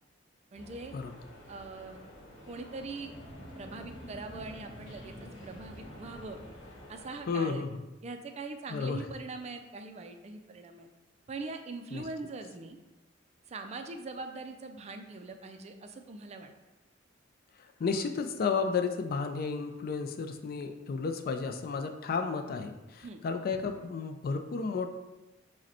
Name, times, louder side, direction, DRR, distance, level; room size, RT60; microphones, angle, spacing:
sound 1, 0.5-7.3, left 1 dB, 80° left, 1.0 m, -51 dB
voice 1, 0.5-0.9 1.5-2.0 2.4-3.1 3.6-6.4 6.9-7.6 8.0-10.9 11.3-12.8 13.5-16.5 23.0-23.2, right 3 dB, 35° right, 6 dB, 0.3 m, -42 dB
sound 2, 2.6-7.5, equal, 25° left, 0.8 m, -49 dB
voice 2, 7.3-7.8 8.7-9.0 11.9-12.0 17.8-25.0, left 5 dB, 50° left, 6 dB, 0.3 m, -32 dB
4.9 x 2.2 x 4.2 m, 1.1 s
head